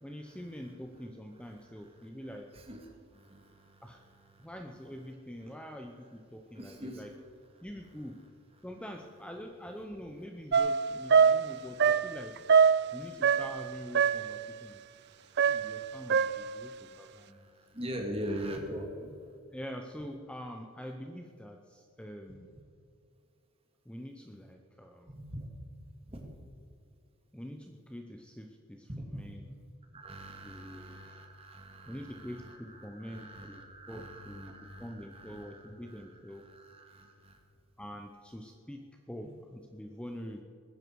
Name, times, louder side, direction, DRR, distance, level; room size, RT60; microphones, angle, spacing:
voice 1, 0.0-2.5 3.8-4.0 4.4-7.1 7.6-8.2 8.6-12.4 12.9-14.8 15.4-17.5 19.5-22.5 23.9-25.1 27.3-29.5 30.4-31.0 31.9-34.5 34.8-36.5 37.8-40.4, equal, 5° left, 3 dB, 0.7 m, -45 dB
voice 2, 2.5-4.5 6.6-7.0 11.0-11.1 11.4-11.8 12.7-13.2 14.5-19.3 25.1-25.6 26.0-26.4 28.9-29.3 29.9-37.4 39.2-39.3, equal, 25° right, 2 dB, 2.2 m, -44 dB
Fear madness & pain, 10.5-13.7 13.9-14.4 15.4-16.6, right 6 dB, 50° right, 0.4 m, -24 dB
21.5 x 10.5 x 4.7 m, 2.5 s
head